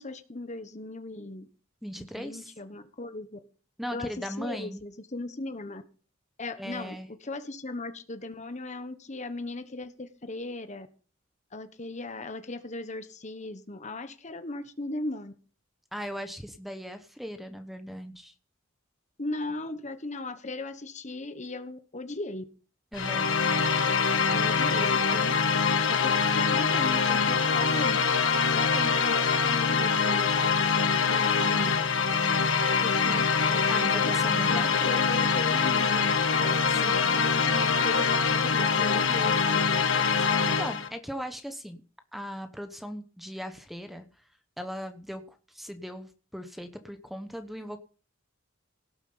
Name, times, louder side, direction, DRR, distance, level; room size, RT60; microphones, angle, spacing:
voice 1, 0.0-1.5 2.0-3.4 3.9-5.8 6.4-7.0 7.2-10.9 11.5-15.3 19.2-22.4 24.3-25.4 25.9-28.2 28.5-30.3 31.1-31.7 32.8-34.1 34.5-39.7, left 2 dB, 35° left, 10 dB, 1.2 m, -37 dB
voice 2, 1.8-2.5 3.8-4.8 6.6-7.1 15.9-18.3 22.9-23.3 33.7-34.8 36.7-37.1 40.4-41.8 42.1-44.0 44.6-47.8, equal, ahead, 8 dB, 1.1 m, -38 dB
sound 1, 22.9-40.9, left 5 dB, 70° left, 1.5 m, -24 dB
17.5 x 7.3 x 5.7 m, 0.39 s
head